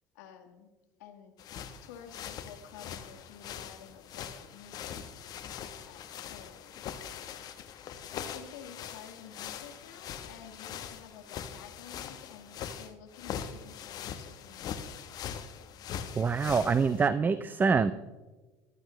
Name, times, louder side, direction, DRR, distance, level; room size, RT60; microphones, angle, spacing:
voice 1, 0.1-0.7 1.0-1.3 1.8-5.0 5.8-6.7 8.1-15.1, left 8 dB, 85° left, 5 dB, 1.6 m, -51 dB
sound 1, 1.4-17.1, left 8 dB, 50° left, 1.0 m, -42 dB
voice 2, 16.2-17.9, right 5 dB, 20° right, 14 dB, 0.4 m, -25 dB
14.5 x 12.5 x 3.1 m, 1.2 s
supercardioid pair, 105°, 9 cm